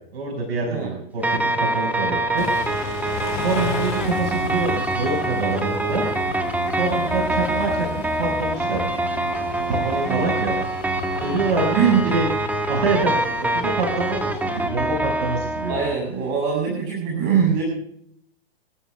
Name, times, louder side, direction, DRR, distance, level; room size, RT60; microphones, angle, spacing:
voice 1, 0.1-2.5 2.8-6.0 6.7-8.9 9.7-10.5 11.2-11.9 12.1-12.3 12.7-15.7, right 3 dB, 75° right, 1 dB, 5.8 m, -26 dB
sound 1, 1.2-16.0, right 2 dB, 5° right, 1.6 m, -25 dB
Car / Idling / Accelerating revving vroom, 2.4-14.7, left 13 dB, 45° left, 1.3 m, -36 dB
voice 2, 11.7-12.2 15.7-17.6, right 7 dB, 40° right, -1 dB, 7.4 m, -21 dB
28.0 x 14.0 x 2.4 m, 0.69 s
hypercardioid pair, 120°, 31 cm